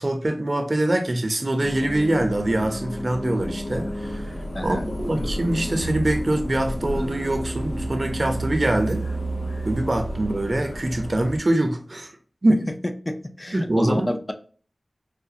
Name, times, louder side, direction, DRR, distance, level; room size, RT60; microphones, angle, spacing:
voice 1, 0.0-4.3 4.6-9.1 9.7-12.1 12.4-12.6 13.5-14.1, right 1 dB, 50° right, 0.6 m, -24 dB
sound 1, 1.6-11.4, right 1 dB, 90° left, 0.7 m, -31 dB
voice 2, 4.5-4.9 13.1-14.2, left 1 dB, 30° left, 0.5 m, -29 dB
4.8 x 2.2 x 2.7 m
wide cardioid pair, 60°, 0 cm